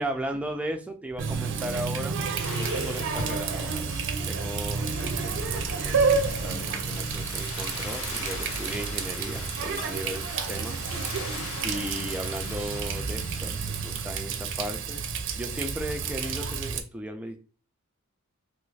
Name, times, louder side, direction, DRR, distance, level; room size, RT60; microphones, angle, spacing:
voice 1, 0.0-2.2 2.6-10.8 11.6-15.1 15.4-17.4, right 1 dB, 5° right, 4 dB, 0.4 m, -36 dB
Water tap faucet, 1.2-16.8, right 5 dB, 60° right, 0.5 m, -30 dB
sound 1, 2.4-14.1, left 4 dB, 80° left, 0.7 m, -41 dB
sound 2, 5.6-10.2, left 1 dB, 40° left, 0.8 m, -48 dB
3.0 x 2.5 x 3.2 m, 0.37 s
head